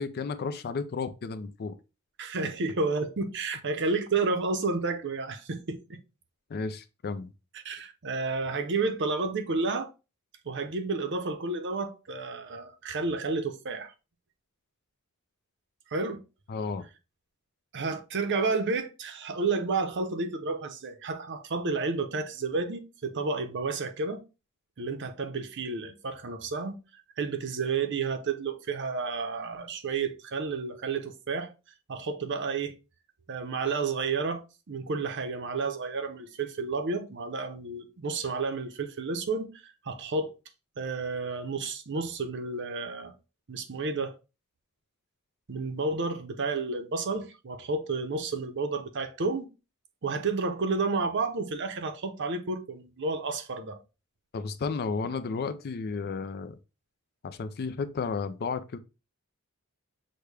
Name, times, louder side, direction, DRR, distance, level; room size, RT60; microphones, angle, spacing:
voice 1, 0.0-1.7 6.5-7.3 16.5-16.8 54.3-56.6 57.2-58.8, left 4 dB, 45° left, 0.4 m, -33 dB
voice 2, 2.2-6.0 7.5-9.9 10.4-13.9 15.9-16.2 17.7-24.2 24.8-26.8 27.2-31.5 31.9-32.7 33.3-40.3 40.8-43.1 43.5-44.1 45.5-49.5 50.0-53.8, right 4 dB, 55° right, 0.7 m, -31 dB
6.4 x 2.2 x 3.3 m
head